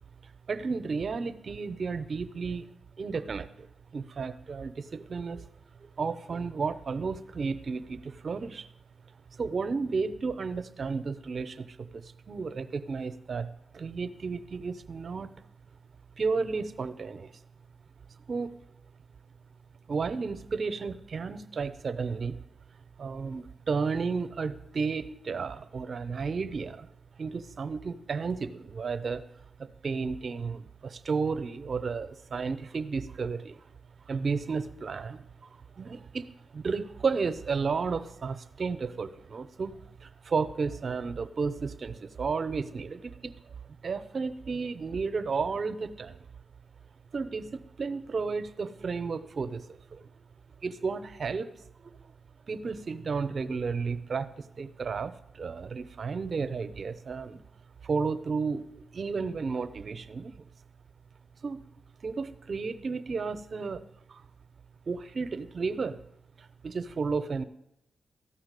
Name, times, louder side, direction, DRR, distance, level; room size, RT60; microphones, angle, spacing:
voice 1, 0.5-2.7 3.0-3.7 3.9-5.4 6.0-8.7 9.3-13.5 13.7-15.4 16.2-17.3 18.3-18.5 19.9-22.4 23.0-26.9 27.2-29.2 29.6-33.6 34.1-35.3 35.8-43.3 43.8-46.2 47.1-50.1 50.6-51.5 51.8-51.9 52.5-54.3 54.6-57.4 57.8-60.3 61.4-61.6 62.0-64.2 64.9-66.0 66.4-67.4, right 4 dB, 60° right, 12 dB, 0.8 m, -33 dB
13.5 x 5.7 x 8.2 m, 0.84 s
supercardioid pair, 45°, 0 cm